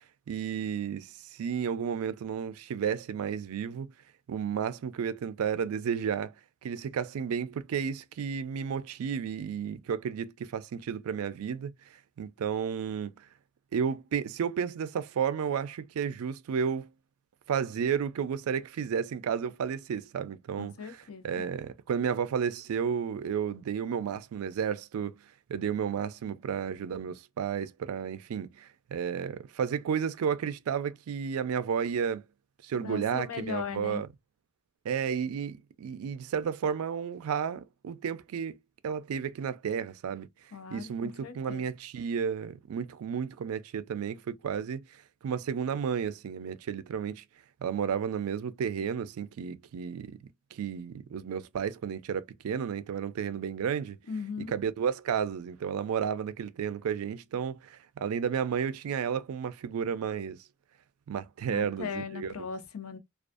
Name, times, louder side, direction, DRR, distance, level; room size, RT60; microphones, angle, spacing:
voice 1, 0.3-3.9 4.3-6.3 6.6-11.7 12.2-13.1 13.7-16.9 17.5-25.2 25.5-32.2 32.6-34.1 34.8-38.5 38.8-40.3 40.7-44.8 45.2-47.2 47.6-50.1 50.5-54.0 54.5-60.4 61.1-62.5, right 7 dB, 90° right, 0.4 m, -32 dB
voice 2, 20.6-21.5 32.8-34.0 40.5-41.6 54.1-54.5 61.5-63.0, left 6 dB, 90° left, 0.6 m, -38 dB
2.5 x 2.3 x 2.3 m
head